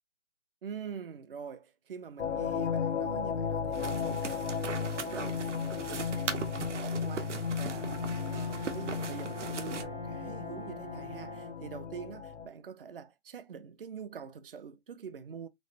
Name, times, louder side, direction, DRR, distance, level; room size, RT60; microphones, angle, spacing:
voice 1, 0.6-15.5, right 7 dB, 50° right, 0.6 m, -45 dB
sound 1, 2.2-12.5, left 6 dB, 80° left, 0.7 m, -35 dB
sound 2, 3.7-9.8, right 6 dB, 80° right, 1.0 m, -40 dB
Brass instrument, 7.4-11.8, left 1 dB, ahead, 0.5 m, -46 dB
3.2 x 3.1 x 2.6 m
hypercardioid pair, 160°, 35 cm